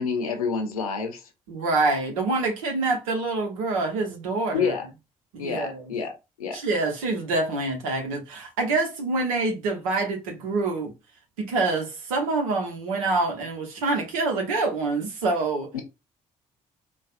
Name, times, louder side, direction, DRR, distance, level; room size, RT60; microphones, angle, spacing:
voice 1, 0.0-1.3 4.5-4.9 5.4-6.1 6.4-6.6 15.7-15.8, left 5 dB, 85° left, 0.6 m, -28 dB
voice 2, 1.5-4.8 5.3-5.9 6.5-10.9 11.4-15.7, right 3 dB, 75° right, 0.9 m, -26 dB
4.1 x 2.3 x 2.5 m
figure-of-eight pair, 40°, 18 cm